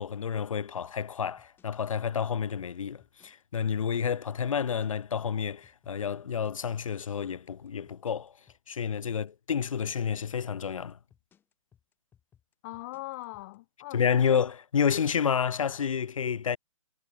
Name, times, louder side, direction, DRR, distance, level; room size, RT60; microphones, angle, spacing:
voice 1, 0.0-8.3 8.7-11.0 13.9-16.6, left 7 dB, 75° left, 0.7 m, -29 dB
sound 1, 1.0-13.6, left 8 dB, 10° left, 4.3 m, -63 dB
voice 2, 12.6-14.2, left 20 dB, 30° left, 1.7 m, -41 dB
hypercardioid pair, 145°, 17 cm